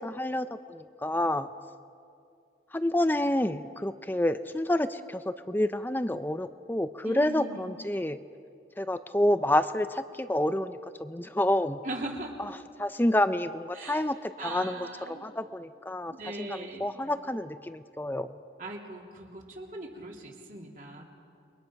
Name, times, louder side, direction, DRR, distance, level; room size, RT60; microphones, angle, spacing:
voice 1, 0.0-1.5 2.7-8.2 8.8-11.8 12.8-16.1 16.4-18.4, left 1 dB, 10° left, 10 dB, 0.5 m, -29 dB
voice 2, 7.0-7.7 11.8-12.4 13.7-14.0 14.4-15.2 16.1-16.9 18.6-21.0, right 2 dB, 45° right, -1 dB, 3.2 m, -40 dB
29.0 x 22.5 x 5.9 m, 2.3 s
head